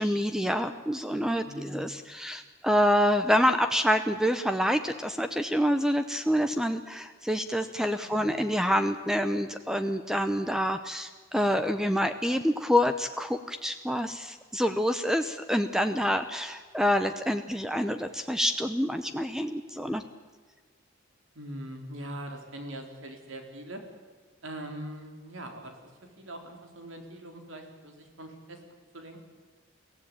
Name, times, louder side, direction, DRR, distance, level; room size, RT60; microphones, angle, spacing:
voice 1, 0.0-20.0, equal, 5° right, 9 dB, 0.8 m, -27 dB
voice 2, 1.4-2.0 8.0-8.4 21.4-23.8 24.4-25.9 26.2-28.6 28.9-29.2, right 1 dB, 75° right, 4 dB, 4.0 m, -42 dB
23.0 x 16.0 x 8.8 m, 1.5 s
head